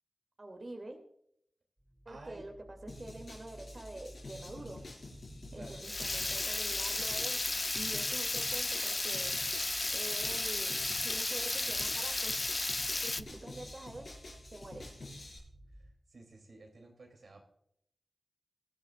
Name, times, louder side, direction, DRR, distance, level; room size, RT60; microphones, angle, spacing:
voice 1, 0.4-1.0 2.1-4.8 5.5-7.4 7.7-9.4 9.9-10.8 11.0-12.4 13.0-14.2 14.5-14.9, right 2 dB, 45° right, 3 dB, 2.5 m, -46 dB
sound 1, 1.8-15.9, equal, 20° right, 4.5 m, -54 dB
voice 2, 2.1-2.5 5.5-5.9 15.7-17.4, right 2 dB, 75° right, 2 dB, 2.9 m, -53 dB
sound 2, 2.9-15.4, left 2 dB, 70° left, 5.6 m, -50 dB
Water tap faucet / Liquid, 5.8-13.2, left 2 dB, 35° left, 0.5 m, -33 dB
19.0 x 12.0 x 2.4 m, 0.70 s
cardioid pair, 45°, 0 cm